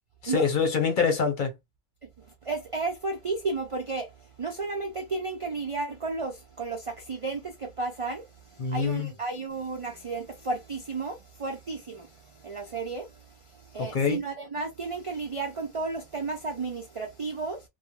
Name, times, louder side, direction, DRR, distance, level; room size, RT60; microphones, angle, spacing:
voice 1, 0.2-1.5 8.6-9.1 13.8-14.2, left 5 dB, 50° left, 0.8 m, -25 dB
voice 2, 2.4-4.1 4.4-8.2 8.6-13.1 13.7-17.6, right 3 dB, 60° right, 0.3 m, -33 dB
2.4 x 2.0 x 2.8 m
omnidirectional pair, 1.2 m